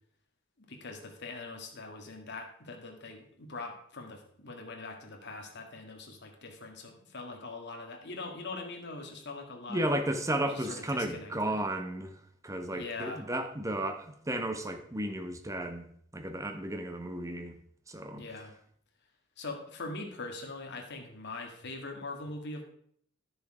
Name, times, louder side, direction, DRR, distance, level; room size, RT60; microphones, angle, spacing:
voice 1, 0.6-9.8 10.4-11.6 12.7-13.3 18.2-18.5 19.4-22.6, left 3 dB, 55° left, 1.9 m, -42 dB
voice 2, 9.7-12.1 12.4-17.5 17.9-18.2, right 1 dB, 15° right, 0.9 m, -33 dB
11.0 x 6.7 x 4.9 m
head